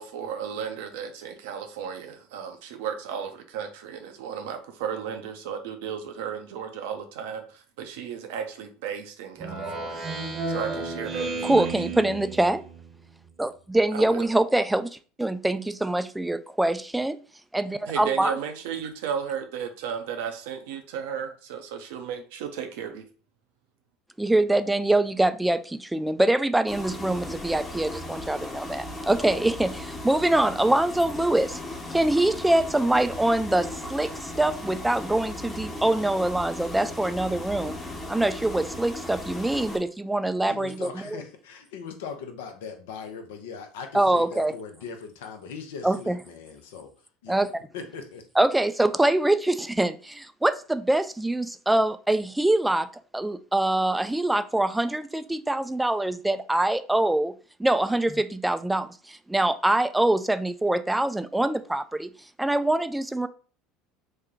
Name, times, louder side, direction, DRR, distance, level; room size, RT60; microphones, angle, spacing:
voice 1, 0.0-11.7 13.9-14.2 17.9-23.0, right 7 dB, 75° right, 0.6 m, -34 dB
Speech synthesizer, 9.4-12.9, right 3 dB, 40° right, 0.8 m, -32 dB
voice 2, 11.4-12.6 13.4-14.9 15.2-17.2 17.5-18.3 24.2-31.6 31.9-37.8 38.1-41.2 43.9-44.5 45.8-46.2 47.3-47.5 48.4-52.9 53.1-57.3 57.6-62.1 62.4-63.3, right 1 dB, 5° right, 0.3 m, -24 dB
sound 1, 26.7-39.8, left 1 dB, 20° left, 0.9 m, -37 dB
voice 3, 40.5-46.9 47.2-47.4 47.7-48.3, left 5 dB, 80° left, 0.6 m, -40 dB
3.2 x 2.2 x 3.7 m
hypercardioid pair, 80°, 0 cm